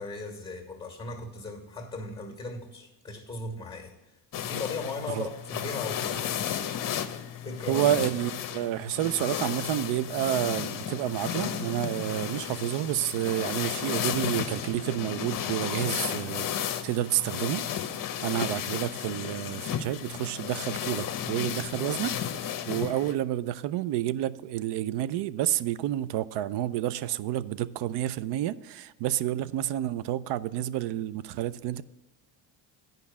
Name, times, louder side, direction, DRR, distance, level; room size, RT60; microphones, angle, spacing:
voice 1, 0.0-6.7 7.4-7.8, left 3 dB, 10° left, 1.9 m, -38 dB
sound 1, 4.3-23.1, left 9 dB, 45° left, 0.9 m, -33 dB
voice 2, 7.7-17.6 18.2-31.8, right 13 dB, 60° right, 0.6 m, -30 dB
10.0 x 5.3 x 7.2 m
cardioid pair, 105°, 47 cm